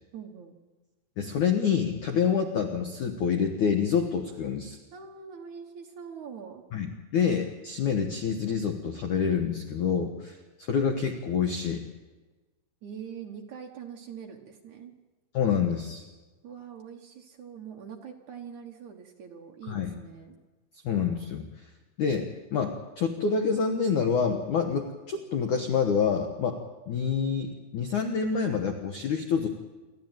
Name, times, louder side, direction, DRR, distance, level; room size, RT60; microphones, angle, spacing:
voice 1, 0.1-0.6 4.9-6.6 12.8-14.9 16.4-20.4, right 7 dB, 80° right, 1 dB, 1.7 m, -43 dB
voice 2, 1.2-4.8 6.7-10.4 10.7-11.8 15.3-16.1 19.7-19.9 20.8-21.5 22.0-26.6 26.9-29.5, left 6 dB, 90° left, 4 dB, 1.7 m, -27 dB
28.0 x 13.5 x 9.1 m, 1.2 s
omnidirectional pair, 5.8 m